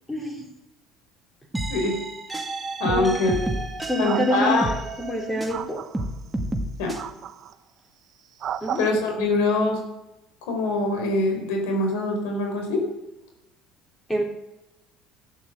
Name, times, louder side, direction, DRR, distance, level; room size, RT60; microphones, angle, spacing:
voice 1, 0.1-0.5 2.9-3.1 3.9-5.8 8.6-8.8 14.1-14.2, left 1 dB, 10° left, 1 dB, 3.6 m, -26 dB
sound 1, 1.5-5.6 5.9-7.0, right 2 dB, 10° right, 1.8 m, -30 dB
voice 2, 2.8-3.3 4.0-4.7 6.8-7.0 8.7-9.8 10.5-12.8, left 2 dB, 85° left, 3 dB, 4.7 m, -23 dB
sound 2, 3.1-3.3 4.0-5.1 5.5-6.1 7.0-7.5 8.4-8.9, right 9 dB, 45° right, 1.1 m, -33 dB
13.5 x 9.8 x 8.0 m, 0.92 s
cardioid pair, 130°, 0 cm